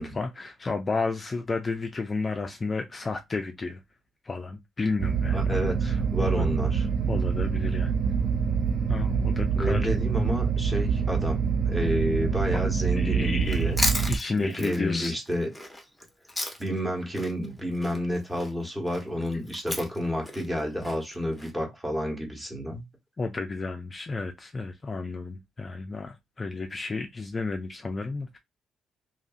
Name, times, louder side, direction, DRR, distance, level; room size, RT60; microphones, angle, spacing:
voice 1, 0.0-3.8 4.2-5.5 5.8-6.6 7.1-7.9 8.9-9.9 12.5-12.7 13.0-13.7 14.1-15.1 23.2-28.4, left 3 dB, 30° left, 0.4 m, -32 dB
sound 1, 5.0-14.2, right 6 dB, 60° right, 0.4 m, -26 dB
voice 2, 5.3-6.9 9.5-13.8 14.4-15.5 16.6-22.8, equal, 15° right, 1.2 m, -30 dB
Chewing mastication, 13.4-16.9 17.1-21.5, left 1 dB, 5° left, 0.8 m, -34 dB
2.8 x 2.5 x 2.5 m
cardioid pair, 90°, 0 cm